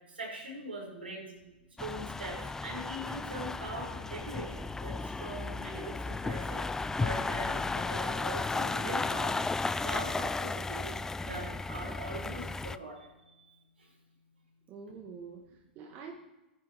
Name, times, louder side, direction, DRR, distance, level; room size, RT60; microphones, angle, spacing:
voice 1, 0.1-1.3 1.8-11.0 11.2-13.1 13.4-13.9, right 1 dB, 85° right, -2 dB, 4.9 m, -42 dB
voice 2, 0.9-1.5 14.7-16.1, right 6 dB, 40° right, 0 dB, 1.8 m, -47 dB
sound 1, 1.8-12.8, left 3 dB, 10° left, 0.4 m, -34 dB
19.0 x 10.5 x 3.1 m, 1.0 s
figure-of-eight pair, 100°, 6 cm